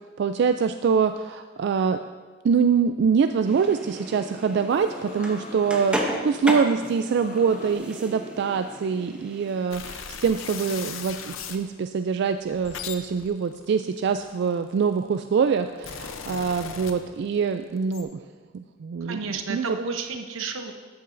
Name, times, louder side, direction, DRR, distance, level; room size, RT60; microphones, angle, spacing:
voice 1, 0.2-2.0 2.4-18.1 18.5-19.2 19.5-19.8, right 6 dB, 60° right, 8 dB, 0.3 m, -24 dB
sound 1, 3.5-9.7, equal, 5° right, 0.8 m, -34 dB
sound 2, 4.6-6.1 6.8-7.7, left 3 dB, 45° left, 0.8 m, -43 dB
sound 3, 9.7-11.6 12.3-14.7 15.4-17.4 17.7-18.0, left 7 dB, 85° left, 0.7 m, -38 dB
voice 2, 19.0-20.7, right 4 dB, 85° right, 6 dB, 0.9 m, -31 dB
13.0 x 8.5 x 2.6 m, 1.4 s
head